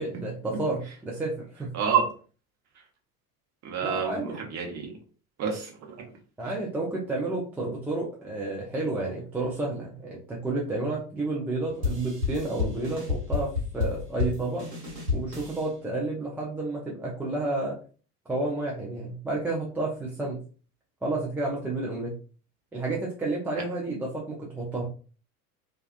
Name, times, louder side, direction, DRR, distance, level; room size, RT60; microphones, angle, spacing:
voice 1, 0.0-1.7 3.8-4.4 6.4-14.6 15.1-17.8 18.3-20.4 21.0-22.1 22.7-24.8, right 2 dB, 5° right, -4 dB, 0.4 m, -31 dB
voice 2, 1.7-2.1 3.6-5.0 5.4-6.0, right 7 dB, 35° right, 1 dB, 0.9 m, -28 dB
sound 1, 11.8-15.7, left 5 dB, 85° right, 0.9 m, -30 dB
2.3 x 2.2 x 2.4 m, 0.38 s
figure-of-eight pair, 70°, 47 cm